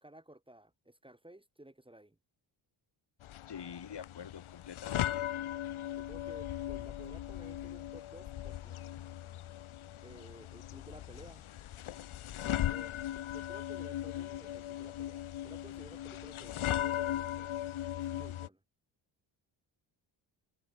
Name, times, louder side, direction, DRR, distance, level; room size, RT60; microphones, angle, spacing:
voice 1, 0.0-2.2 5.9-9.0 10.0-11.5 12.4-13.0 13.3-17.5 17.9-18.6, right 1 dB, 10° right, 2.8 m, -55 dB
sound 1, 3.2-18.5, left 12 dB, 75° left, 1.4 m, -38 dB
voice 2, 3.5-5.3, left 7 dB, 55° left, 2.9 m, -46 dB
open air
cardioid pair, 80°, 49 cm